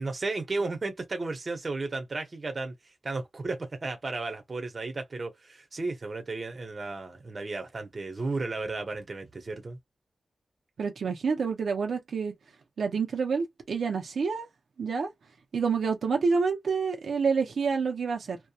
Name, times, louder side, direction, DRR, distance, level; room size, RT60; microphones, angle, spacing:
voice 1, 0.0-2.7 3.0-9.8, right 3 dB, 40° right, 0.8 m, -34 dB
voice 2, 10.8-12.3 12.8-14.5 14.8-15.1 15.5-18.4, right 5 dB, 90° right, 0.7 m, -28 dB
2.8 x 2.2 x 2.3 m
wide cardioid pair, 135°, 0 cm